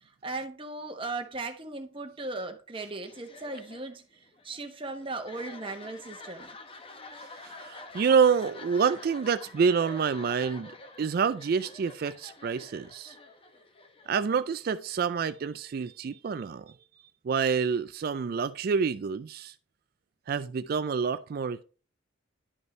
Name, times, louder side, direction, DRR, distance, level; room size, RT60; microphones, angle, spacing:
voice 1, 0.0-4.0 4.4-6.5, right 3 dB, 25° right, 1.1 m, -37 dB
sound 1, 3.0-14.7, left 2 dB, 30° left, 1.0 m, -47 dB
voice 2, 7.4-13.2 14.1-16.7 17.2-19.5 20.3-21.6, right 6 dB, 50° right, 0.3 m, -27 dB
11.0 x 5.3 x 3.2 m
head